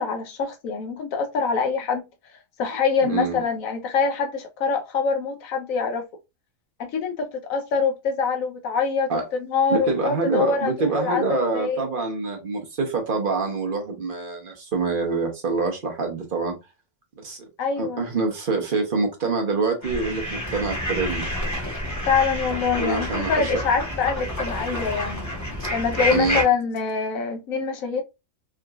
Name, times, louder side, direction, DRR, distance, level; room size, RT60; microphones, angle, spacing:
voice 1, 0.0-2.0 2.6-6.1 6.8-9.1 9.5-11.9 17.6-18.1 22.1-25.3 25.7-28.0, left 5 dB, 75° left, 1.1 m, -25 dB
voice 2, 3.0-3.4 9.1-9.2 9.7-16.6 17.2-17.5 17.8-21.3 22.8-23.5 26.1-26.4, right 4 dB, 45° right, 0.9 m, -26 dB
sound 1, 19.8-26.4, equal, 15° left, 1.1 m, -29 dB
3.7 x 2.9 x 2.3 m
omnidirectional pair, 1.4 m